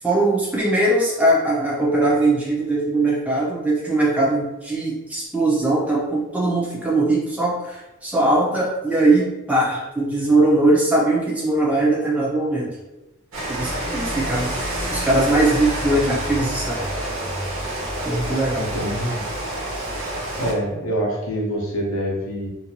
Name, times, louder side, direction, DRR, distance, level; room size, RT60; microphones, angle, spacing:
voice 1, 0.0-12.8 13.5-14.5 14.9-16.9 18.0-18.7, right 2 dB, 5° right, -5 dB, 0.6 m, -20 dB
Rain, 13.3-20.5, right 1 dB, 75° right, 1.1 m, -28 dB
voice 2, 18.6-19.2 20.3-22.5, equal, 70° left, -1 dB, 0.7 m, -25 dB
2.6 x 2.4 x 2.8 m, 1.0 s
head